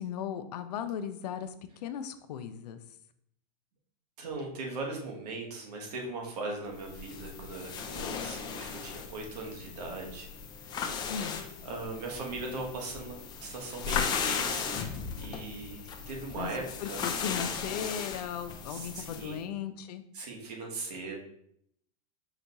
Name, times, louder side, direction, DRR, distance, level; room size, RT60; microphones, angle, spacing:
voice 1, 0.0-1.5 1.8-2.8 11.1-11.4 16.3-16.5 16.8-20.0, left 8 dB, 85° left, 9 dB, 0.5 m, -37 dB
voice 2, 4.2-10.3 10.7-11.3 11.6-14.8 15.1-17.0 18.7-19.5 20.1-21.1, right 3 dB, 80° right, 0 dB, 1.3 m, -39 dB
sound 1, 6.8-19.3, left 6 dB, 20° left, 0.4 m, -36 dB
4.9 x 2.3 x 4.0 m, 0.70 s
supercardioid pair, 140°, 20 cm